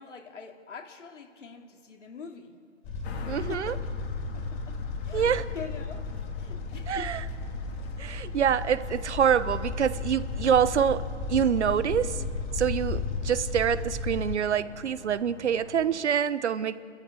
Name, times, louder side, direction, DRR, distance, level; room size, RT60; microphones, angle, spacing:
voice 1, 0.0-2.6 3.3-3.9 4.3-6.1 6.4-7.1, left 5 dB, 75° left, 4 dB, 2.8 m, -44 dB
sound 1, 2.8-14.4, left 4 dB, 25° left, 3.0 m, -34 dB
sound 2, 3.0-15.9, left 3 dB, 55° left, 2.6 m, -47 dB
voice 2, 3.3-3.7 5.1-5.4 6.9-7.2 8.0-12.2 12.5-16.8, right 8 dB, 65° right, 16 dB, 1.0 m, -26 dB
26.5 x 13.5 x 8.4 m, 2.3 s
hypercardioid pair, 140°, 36 cm